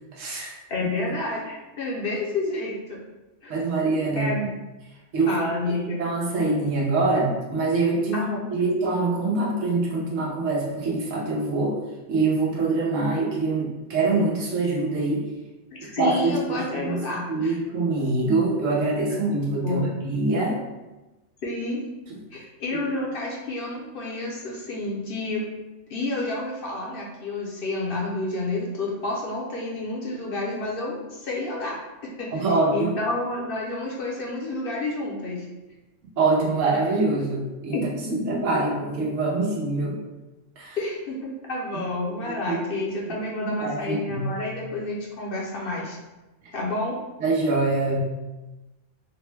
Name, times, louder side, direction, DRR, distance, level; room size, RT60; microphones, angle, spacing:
voice 1, 0.1-0.5 3.5-4.3 5.1-11.8 12.1-15.3 16.0-20.6 32.3-32.9 36.2-37.8 38.3-40.0 40.6-40.8 42.2-42.6 43.6-44.3 47.2-48.0, right 3 dB, 90° right, -3 dB, 1.2 m, -24 dB
voice 2, 0.7-3.0 3.4-3.6 4.1-4.5 5.3-6.0 8.1-8.5 15.7-17.6 19.6-19.9 21.4-21.8 22.3-25.4 25.9-31.8 32.2-32.4 32.7-35.5 37.7-38.5 40.8-46.0 46.5-47.0, left 2 dB, 55° left, -3 dB, 0.7 m, -29 dB
3.6 x 2.2 x 3.2 m, 1.1 s
omnidirectional pair, 1.3 m